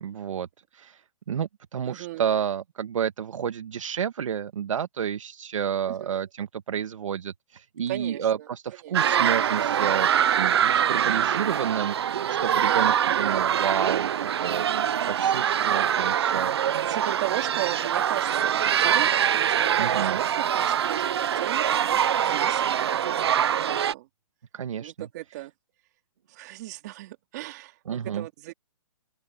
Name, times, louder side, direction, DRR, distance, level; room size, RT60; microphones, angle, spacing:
voice 1, 0.0-1.0 1.3-16.5 19.8-20.2 24.5-24.9 27.9-28.3, right 8 dB, 60° right, 1.4 m, -30 dB
voice 2, 1.8-2.3 5.9-6.1 7.9-8.5 8.8-9.1 12.7-13.0 13.2-13.4 16.8-24.1 24.8-25.5 26.3-28.5, right 17 dB, 30° right, 3.0 m, -37 dB
sound 1, 8.9-23.9, right 9 dB, 45° right, 0.4 m, -24 dB
open air
hypercardioid pair, 170°, 18 cm